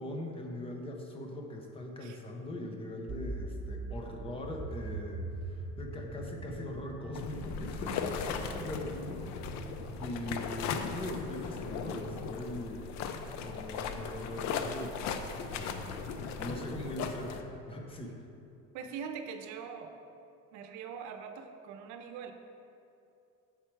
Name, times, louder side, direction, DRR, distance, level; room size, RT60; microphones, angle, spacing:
voice 1, 0.0-9.7 10.0-12.9 13.2-18.3, left 1 dB, 20° left, 1 dB, 0.7 m, -41 dB
sound 1, 3.1-10.0, right 2 dB, 30° right, 1.0 m, -42 dB
sound 2, 7.1-17.4, left 6 dB, 70° left, 0.5 m, -38 dB
voice 2, 18.7-20.0 20.5-22.3, right 6 dB, 80° right, 7 dB, 0.6 m, -42 dB
7.3 x 4.5 x 4.5 m, 2.7 s
cardioid pair, 155°, 29 cm